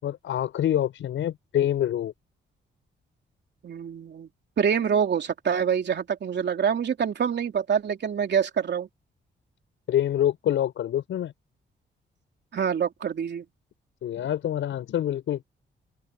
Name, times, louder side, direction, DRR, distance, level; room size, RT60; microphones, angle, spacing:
voice 1, 0.0-2.1 9.9-11.3 14.0-15.4, left 11 dB, 85° left, 6.6 m, -26 dB
voice 2, 3.6-4.3 4.6-8.9 12.5-13.4, right 7 dB, 65° right, 3.2 m, -26 dB
open air
cardioid pair, 75°, 19 cm